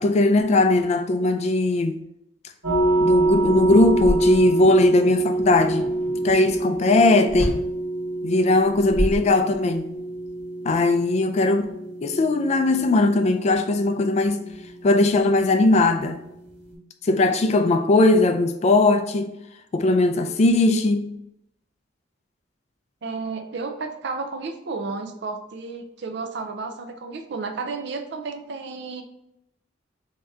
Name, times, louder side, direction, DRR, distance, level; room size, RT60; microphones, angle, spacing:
voice 1, 0.0-2.0 3.0-5.9 6.2-7.6 8.2-9.9 10.6-11.7 12.0-14.4 14.8-16.2 17.0-19.3 19.7-21.1, left 2 dB, 35° left, 0.3 m, -19 dB
sound 1, 2.6-16.7, right 2 dB, 85° right, 1.4 m, -27 dB
sound 2, 2.8-2.9 3.2-4.7 7.3-7.7 8.6-9.8, equal, 35° right, 1.3 m, -29 dB
voice 2, 23.0-29.0, right 4 dB, 65° right, 0.5 m, -32 dB
3.3 x 2.8 x 3.5 m
head